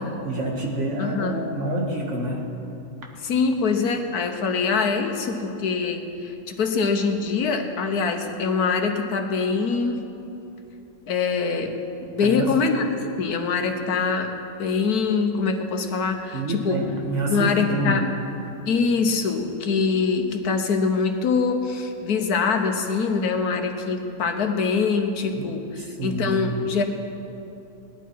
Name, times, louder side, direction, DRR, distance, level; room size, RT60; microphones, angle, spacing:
voice 1, 0.2-2.5 12.2-12.5 16.3-18.0 25.2-25.5 26.0-26.6, right 1 dB, 55° right, 0 dB, 2.0 m, -27 dB
voice 2, 1.0-1.4 3.2-10.0 11.1-11.7 12.1-12.9 13.2-14.3 14.6-16.8 17.3-18.0 18.7-26.8, left 5 dB, 90° left, 5 dB, 1.6 m, -24 dB
18.0 x 11.5 x 4.6 m, 2.8 s
omnidirectional pair, 1.6 m